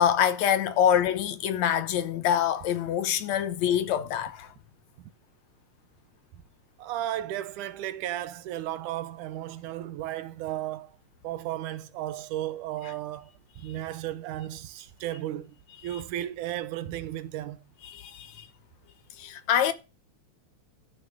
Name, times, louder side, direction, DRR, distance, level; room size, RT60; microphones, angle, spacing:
voice 1, 0.0-4.5 17.8-18.5 19.2-19.7, left 9 dB, 70° left, 2.2 m, -25 dB
voice 2, 6.8-10.9 11.2-15.6 15.8-17.6, right 13 dB, 90° right, 2.4 m, -34 dB
13.5 x 6.2 x 6.4 m
omnidirectional pair, 3.4 m